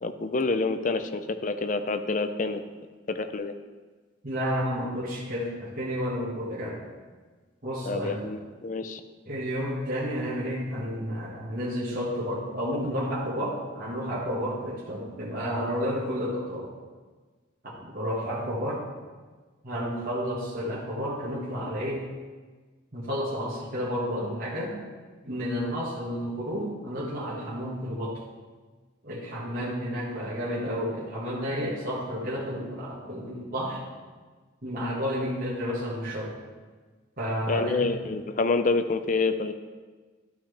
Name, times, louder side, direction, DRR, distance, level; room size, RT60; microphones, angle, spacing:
voice 1, 0.0-2.6 3.1-3.5 7.8-9.0 37.5-39.5, left 3 dB, 40° left, 9 dB, 0.4 m, -27 dB
voice 2, 4.2-6.8 7.6-8.3 9.2-16.7 17.6-18.8 19.6-22.1 22.9-24.8 25.2-28.2 29.0-33.8 34.6-36.3 37.2-37.9, equal, 45° right, -8 dB, 1.5 m, -31 dB
12.0 x 5.8 x 3.3 m, 1.4 s
head